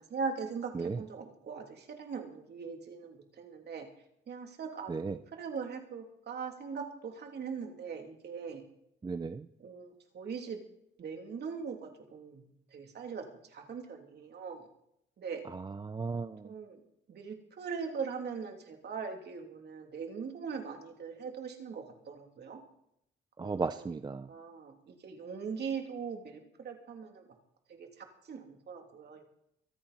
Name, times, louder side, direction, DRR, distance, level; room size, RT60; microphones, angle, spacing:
voice 1, 0.0-3.9 4.3-8.6 9.6-10.6 11.0-14.7 15.2-15.4 16.4-16.8 17.1-22.6 23.4-23.9 24.3-27.3 27.7-29.2, right 5 dB, 55° right, 3 dB, 2.9 m, -41 dB
voice 2, 9.0-9.5 15.5-16.5 23.4-24.3, right 4 dB, 20° right, 11 dB, 0.5 m, -35 dB
25.0 x 8.8 x 4.2 m, 0.75 s
cardioid pair, 90°, 20 cm